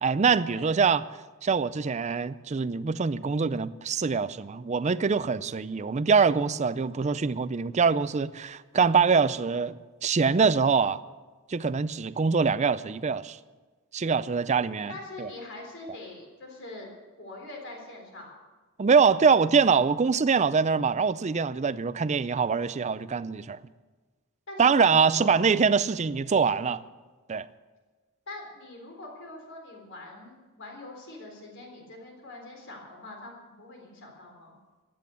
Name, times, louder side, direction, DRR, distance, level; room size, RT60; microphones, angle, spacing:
voice 1, 0.0-1.0 1.4-11.0 11.5-13.4 13.9-14.9 15.2-15.3 18.8-23.6 24.6-26.8 27.3-27.5, right 5 dB, 30° right, 0.4 m, -24 dB
voice 2, 14.9-16.9 17.2-18.3 24.5-25.4 28.3-34.5, left 2 dB, 55° left, 3.9 m, -43 dB
16.0 x 10.5 x 6.9 m
head